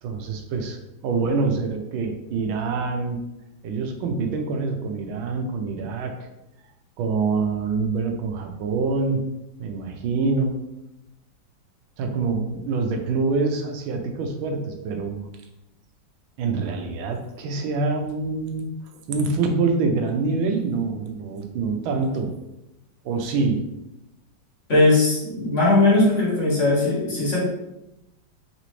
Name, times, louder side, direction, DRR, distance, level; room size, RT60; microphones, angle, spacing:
voice 1, 0.0-3.2 3.6-6.1 7.0-9.2 9.6-10.6 12.0-15.2 16.4-18.7 19.1-22.3 23.0-23.6, right 4 dB, 85° right, 4 dB, 1.5 m, -25 dB
voice 2, 24.7-27.4, left 2 dB, 40° left, -7 dB, 1.6 m, -19 dB
4.1 x 4.0 x 3.1 m, 0.90 s
omnidirectional pair, 2.1 m